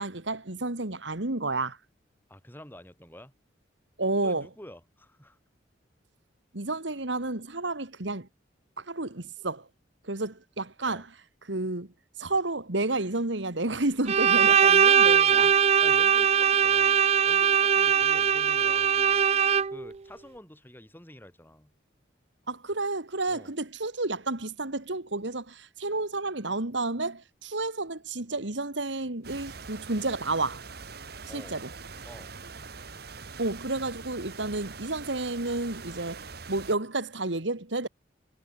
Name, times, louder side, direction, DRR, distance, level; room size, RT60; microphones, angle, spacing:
voice 1, 0.0-1.8 4.0-4.5 6.5-8.3 8.8-9.7 10.0-11.1 11.4-11.9 12.2-15.5 22.5-30.6 31.3-31.7 33.4-36.2 36.5-37.9, right 2 dB, 70° right, 2.2 m, -31 dB
voice 2, 2.3-3.3 4.2-5.4 10.9-11.0 15.8-19.2 19.7-21.7 23.3-23.5 31.3-31.6 32.1-32.3, equal, 10° left, 6.9 m, -48 dB
Bowed string instrument, 14.1-19.9, right 7 dB, 35° right, 0.4 m, -21 dB
sound 1, 29.2-36.8, right 4 dB, 55° right, 1.9 m, -43 dB
head